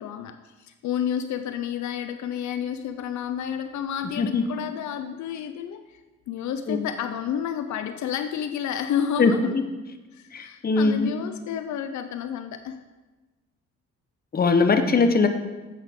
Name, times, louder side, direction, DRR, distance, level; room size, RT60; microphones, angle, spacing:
voice 1, 0.0-5.8 6.3-9.6 10.1-12.9, left 9 dB, 70° left, 9 dB, 0.6 m, -30 dB
voice 2, 10.3-11.1 14.3-15.3, left 4 dB, 30° left, 7 dB, 0.9 m, -20 dB
10.5 x 8.1 x 3.7 m, 1.2 s
cardioid pair, 90°, 30 cm